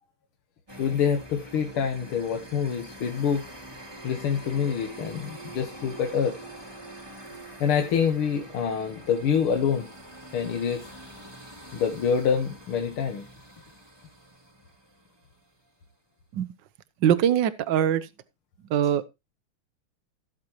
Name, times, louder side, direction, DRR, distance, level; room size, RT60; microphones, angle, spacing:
sound 1, 0.7-15.4, right 1 dB, 10° right, 2.7 m, -45 dB
voice 1, 0.8-3.5 4.0-6.4 7.6-9.9 10.3-10.9 11.7-13.3, left 7 dB, 80° left, 2.1 m, -26 dB
voice 2, 17.0-18.1 18.7-19.1, right 9 dB, 65° right, 1.5 m, -22 dB
17.0 x 7.9 x 3.0 m
omnidirectional pair, 2.3 m